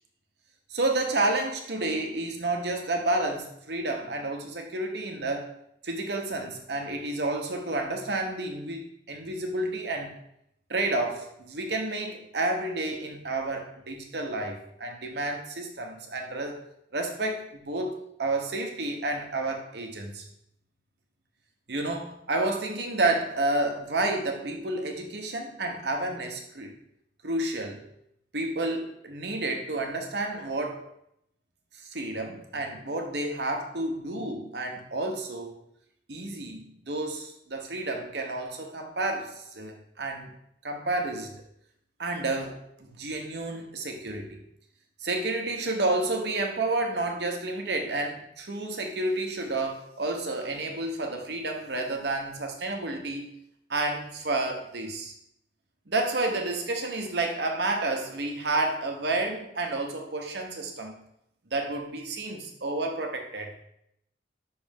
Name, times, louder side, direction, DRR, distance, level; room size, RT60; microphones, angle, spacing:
voice 1, 0.7-5.5 5.8-10.1 10.7-16.6 16.9-20.2 21.7-26.7 27.2-27.8 28.3-30.9 31.8-35.5 36.1-40.3 40.6-41.3 42.0-44.4 45.0-53.3 53.7-55.1 55.9-60.9 61.5-63.6, right 2 dB, 60° right, 3 dB, 1.0 m, -30 dB
6.0 x 3.2 x 5.2 m, 0.75 s
head